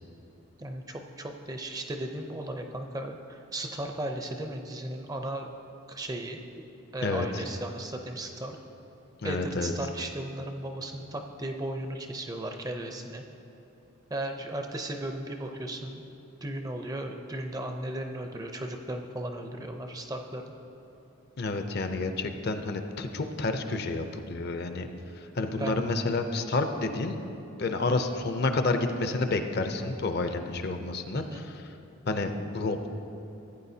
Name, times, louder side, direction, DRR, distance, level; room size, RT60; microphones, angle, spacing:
voice 1, 0.6-5.5 5.9-6.6 6.9-8.6 9.2-13.2 14.1-16.0 16.4-20.5 25.6-25.9 31.1-31.5, right 1 dB, 15° right, 4 dB, 0.4 m, -36 dB
voice 2, 9.2-9.7 21.4-24.9 25.2-27.2 27.6-31.6 32.1-32.9, left 3 dB, 45° left, 7 dB, 0.5 m, -29 dB
15.0 x 9.0 x 2.7 m, 3.0 s
head